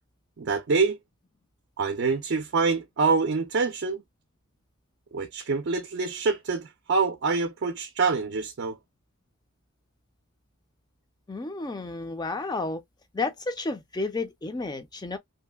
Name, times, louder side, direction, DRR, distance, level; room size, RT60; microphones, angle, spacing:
voice 1, 0.4-1.0 1.8-4.0 5.1-8.8, right 4 dB, 55° right, 0.4 m, -26 dB
voice 2, 11.3-12.8 13.1-15.2, left 3 dB, 20° left, 0.5 m, -31 dB
2.7 x 2.5 x 2.3 m
head